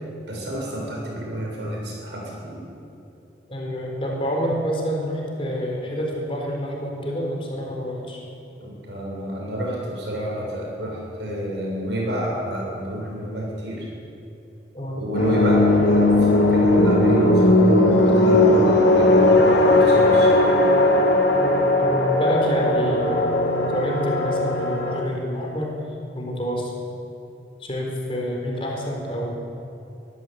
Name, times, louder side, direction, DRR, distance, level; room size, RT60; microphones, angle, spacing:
voice 1, 0.3-2.6 8.6-13.9 14.9-20.5, right 1 dB, 80° right, -2 dB, 6.8 m, -28 dB
voice 2, 3.5-8.2 14.7-15.1 21.4-25.7 26.1-26.7 27.6-29.5, equal, 30° left, -1 dB, 4.4 m, -28 dB
sound 1, 15.1-25.0, left 2 dB, 75° left, 2.8 m, -17 dB
23.0 x 14.0 x 8.3 m, 2.7 s
head